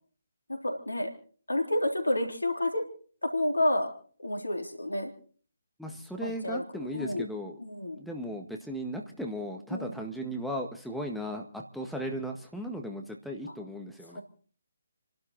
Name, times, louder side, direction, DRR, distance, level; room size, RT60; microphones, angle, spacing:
voice 1, 0.5-1.1 1.5-2.9 3.2-3.9 4.2-5.1 6.2-6.6 6.9-7.3 7.6-8.0 9.7-10.0 14.1-14.2, left 1 dB, 75° left, 4 dB, 3.6 m, -29 dB
voice 2, 5.8-7.6 7.9-14.2, equal, ahead, 1 dB, 1.8 m, -36 dB
30.0 x 12.0 x 4.0 m, 0.43 s
figure-of-eight pair, 145°, 0 cm